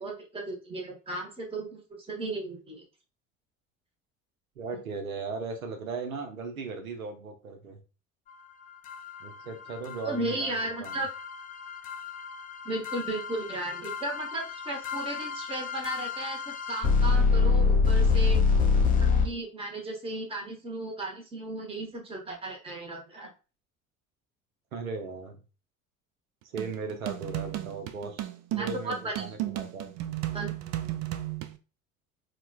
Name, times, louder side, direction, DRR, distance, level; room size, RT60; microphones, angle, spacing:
voice 1, 0.0-2.8 10.0-11.1 12.6-18.4 19.0-23.3 28.6-29.1 30.3-30.5, right 2 dB, 15° right, 0 dB, 0.9 m, -35 dB
voice 2, 4.6-7.8 9.2-11.0 24.7-25.4 26.4-29.9, right 4 dB, 85° right, 5 dB, 0.7 m, -37 dB
sound 1, 8.9-19.3, left 4 dB, 20° left, 0.4 m, -27 dB
sound 2, 26.6-31.6, right 14 dB, 40° right, 0.4 m, -34 dB
4.4 x 2.2 x 2.2 m, 0.33 s
figure-of-eight pair, 65°, 41 cm